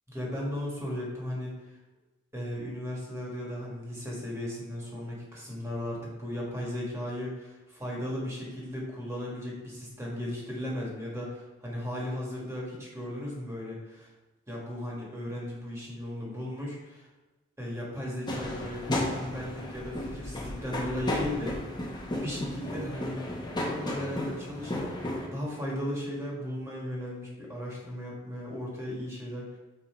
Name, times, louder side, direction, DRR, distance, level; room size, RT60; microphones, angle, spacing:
voice 1, 0.1-1.5 2.3-14.1 14.5-17.1 17.6-21.5 22.2-23.2 23.6-24.9 25.3-29.5, left 1 dB, 15° right, -4 dB, 1.6 m, -36 dB
sound 1, 18.3-25.3, left 1 dB, 20° left, 0.8 m, -34 dB
5.5 x 4.5 x 4.5 m, 1.1 s
head